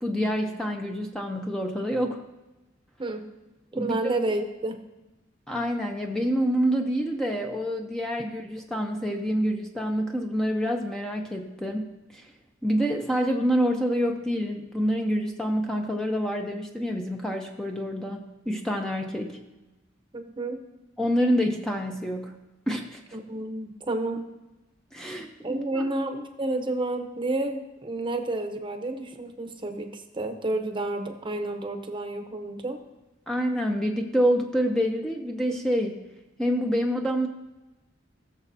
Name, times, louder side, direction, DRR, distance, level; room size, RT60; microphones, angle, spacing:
voice 1, 0.0-2.2 3.7-4.0 5.5-11.9 12.1-12.3 12.6-19.4 21.0-22.3 22.7-23.0 24.9-25.8 33.3-36.0 36.4-37.3, equal, 5° left, 1 dB, 0.7 m, -27 dB
voice 2, 3.7-4.8 20.1-20.6 23.1-24.2 25.4-32.8, right 2 dB, 25° right, 6 dB, 0.9 m, -30 dB
19.5 x 7.0 x 2.7 m, 1.1 s
head